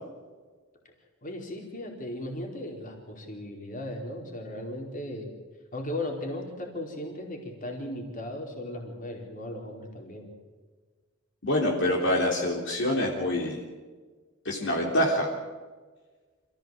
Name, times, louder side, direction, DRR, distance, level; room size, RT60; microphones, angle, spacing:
voice 1, 1.2-5.3 5.7-10.3, left 1 dB, 40° left, 1 dB, 4.5 m, -37 dB
voice 2, 11.4-13.6 14.5-15.3, left 1 dB, 60° left, -1 dB, 3.5 m, -26 dB
27.5 x 15.5 x 7.8 m, 1.4 s
head